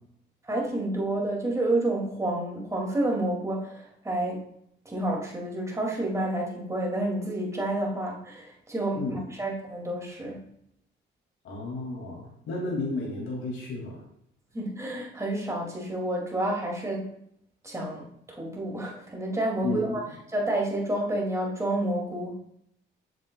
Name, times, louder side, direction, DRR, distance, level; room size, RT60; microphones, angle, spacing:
voice 1, 0.4-4.4 4.9-10.5 14.5-17.1 17.6-20.0 20.3-22.4, right 1 dB, 15° right, -2 dB, 2.3 m, -29 dB
voice 2, 11.4-14.0 19.6-20.0, left 3 dB, 80° left, -2 dB, 2.3 m, -32 dB
7.5 x 7.2 x 2.3 m, 0.72 s
cardioid pair, 90°, 20 cm